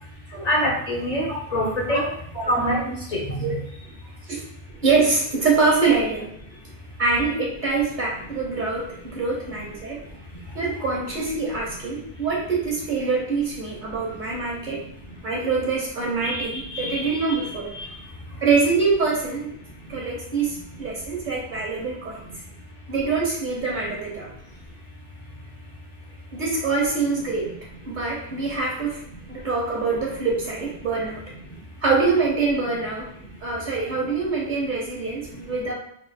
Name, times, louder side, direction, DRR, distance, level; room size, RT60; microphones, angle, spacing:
voice 1, 0.4-2.1 2.5-3.6 16.2-17.5, equal, 40° left, -3 dB, 0.8 m, -26 dB
voice 2, 4.8-6.3 7.0-10.0 10.5-14.8 15.2-17.7 18.4-19.6 19.9-22.2 22.9-24.3 26.3-27.5 27.9-29.0 29.3-31.2 31.8-33.1 33.4-35.7, right 4 dB, 50° right, -3 dB, 1.1 m, -24 dB
3.7 x 3.4 x 2.3 m, 0.71 s
omnidirectional pair, 1.1 m